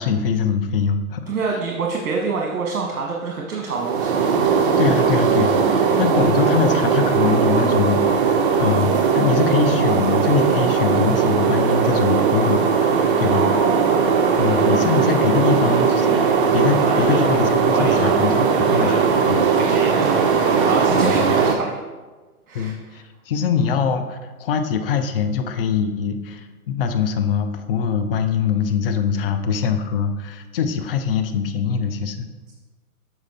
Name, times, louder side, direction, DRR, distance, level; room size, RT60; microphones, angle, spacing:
voice 1, 0.0-1.6 4.8-13.5 14.4-19.4 20.9-21.5 22.5-32.3, left 6 dB, 40° left, 7 dB, 0.7 m, -23 dB
voice 2, 1.3-4.3 13.2-14.3 16.8-17.2 17.6-18.1 18.5-19.2 19.5-20.3 20.7-21.8 22.5-22.7, right 4 dB, 70° right, 0 dB, 1.2 m, -27 dB
sound 1, 3.7-21.6, right 6 dB, 35° right, 0.8 m, -18 dB
7.3 x 4.7 x 4.2 m, 1.3 s
hypercardioid pair, 130°, 44 cm